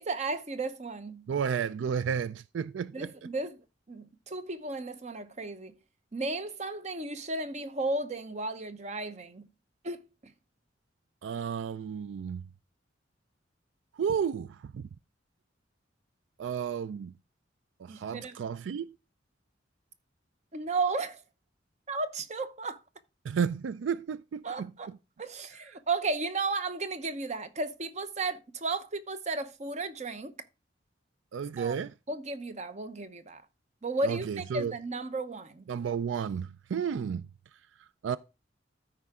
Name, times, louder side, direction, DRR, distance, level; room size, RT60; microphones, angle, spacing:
voice 1, 0.0-1.3 2.9-3.6 3.9-5.7 6.1-9.5 9.8-10.1 17.9-18.4 20.5-21.2 21.9-22.8 24.4-24.9 25.2-30.4 31.6-31.8 32.1-33.4 33.8-35.6, right 3 dB, 40° right, 0.8 m, -34 dB
voice 2, 1.3-3.1 11.2-12.4 13.9-14.9 16.4-17.1 17.8-18.9 23.2-25.0 31.3-31.9 34.0-34.7 35.7-37.3 38.0-38.2, right 7 dB, 80° right, 0.3 m, -32 dB
13.5 x 4.9 x 3.6 m
head